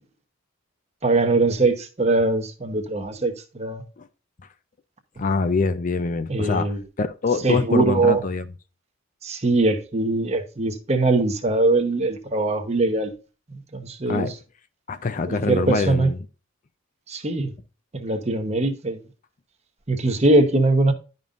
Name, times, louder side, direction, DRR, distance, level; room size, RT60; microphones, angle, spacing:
voice 1, 1.0-3.8 6.3-6.8 7.4-8.2 9.2-13.1 13.7-14.3 15.3-16.1 17.1-17.5 17.9-19.0 19.9-20.9, right 2 dB, 35° right, 1.0 m, -21 dB
voice 2, 5.2-8.5 14.1-14.4 14.9-16.2, left 4 dB, 40° left, 0.5 m, -24 dB
11.0 x 5.3 x 2.5 m
head